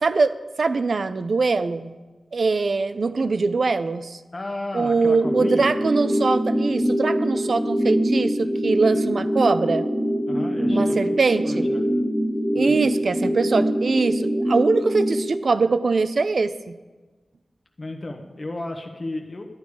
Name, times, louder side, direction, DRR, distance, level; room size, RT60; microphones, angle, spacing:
voice 1, 0.0-1.9 2.3-4.2 4.7-9.8 10.7-11.7 12.5-16.8, right 4 dB, 60° right, 12 dB, 0.5 m, -22 dB
voice 2, 4.3-5.7 10.3-11.2 11.4-11.8 12.7-12.8 17.8-19.4, left 2 dB, 35° left, 3 dB, 1.1 m, -33 dB
sound 1, 5.2-15.2, equal, 5° right, 1.4 m, -23 dB
11.0 x 10.5 x 4.8 m, 1.3 s
wide cardioid pair, 100°, 0 cm